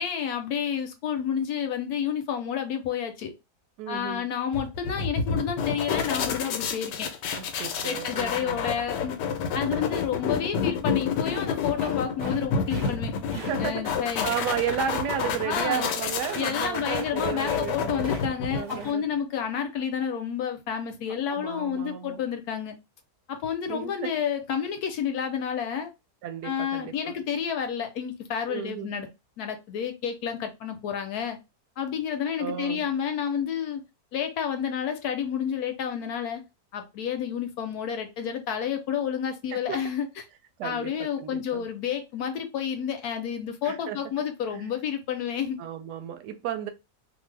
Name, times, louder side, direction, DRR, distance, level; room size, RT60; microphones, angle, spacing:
voice 1, 0.0-3.3 3.9-7.1 7.8-9.2 9.5-13.1 13.6-14.4 15.4-15.9 16.3-22.7 23.3-25.9 26.4-29.1 29.4-31.4 31.8-33.8 34.1-36.4 36.7-40.1 40.6-45.6, left 8 dB, 70° left, 1.0 m, -30 dB
voice 2, 3.8-4.3 7.3-8.6 13.3-14.0 14.2-18.1 18.5-19.0 21.3-22.2 23.7-24.1 26.2-27.2 28.5-29.1 32.4-32.9 39.5-39.8 40.6-41.7 43.6-44.0 44.5-44.7 45.6-46.7, right 9 dB, 80° right, 1.1 m, -33 dB
sound 1, 4.5-18.9, left 6 dB, 90° left, 1.2 m, -29 dB
sound 2, 11.2-12.4 12.7-12.9 13.3-13.5 15.1-15.4 15.7-15.9 16.2-16.5 16.8-17.1 17.3-18.2 18.5-18.9, right 2 dB, 40° right, 0.9 m, -41 dB
2.6 x 2.6 x 3.1 m
omnidirectional pair, 1.8 m